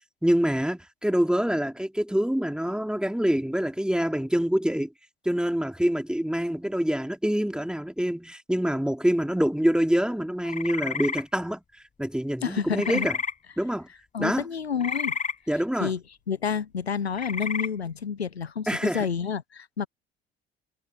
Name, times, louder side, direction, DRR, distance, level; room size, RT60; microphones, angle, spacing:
voice 1, 0.2-4.9 5.2-11.6 12.0-13.1 13.6-13.9 14.2-14.5 15.5-15.9 18.7-19.1, equal, 5° right, 3.2 m, -25 dB
sound 1, 10.5-11.2 12.8-13.3 14.8-15.3 17.1-17.7, left 6 dB, 25° left, 1.1 m, -30 dB
voice 2, 12.4-13.1 14.1-15.2 15.8-16.0 16.3-19.9, left 7 dB, 85° left, 1.3 m, -29 dB
figure-of-eight pair, 50°, 31 cm